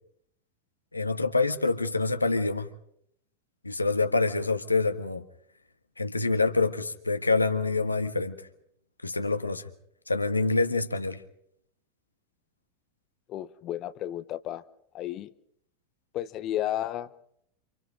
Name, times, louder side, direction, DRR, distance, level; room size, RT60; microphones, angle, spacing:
voice 1, 0.9-2.7 3.6-5.3 6.0-8.4 9.0-9.7 10.1-11.2, left 3 dB, 90° left, 1.6 m, -26 dB
voice 2, 13.3-14.6 14.9-15.3 16.1-17.1, left 12 dB, 40° left, 1.0 m, -32 dB
29.5 x 27.5 x 3.8 m
figure-of-eight pair, 85°, 0 cm